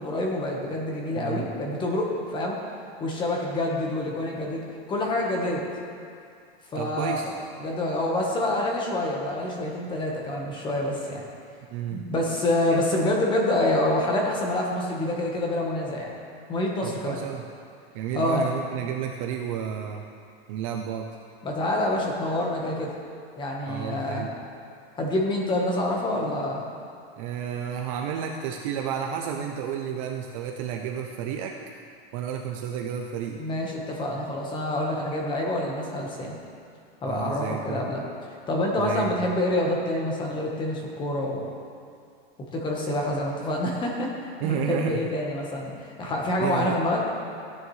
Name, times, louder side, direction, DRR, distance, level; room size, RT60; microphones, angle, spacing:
voice 1, 0.0-2.6 3.0-5.6 6.7-7.2 7.6-11.2 11.9-16.1 16.5-17.2 18.1-18.5 21.4-22.9 23.4-24.3 25.0-26.6 33.4-36.4 37.0-38.0 38.5-41.4 42.5-47.0, left 1 dB, 15° left, -1 dB, 1.2 m, -27 dB
voice 2, 1.2-1.5 6.8-7.3 11.7-12.0 12.7-12.8 16.8-17.4 17.9-20.0 20.5-21.1 23.7-24.3 27.2-31.6 32.1-33.4 37.1-37.9 38.8-39.3 44.4-45.0 46.4-46.8, right 8 dB, 35° right, 2 dB, 0.5 m, -31 dB
15.0 x 9.8 x 3.2 m, 2.3 s
supercardioid pair, 165°, 32 cm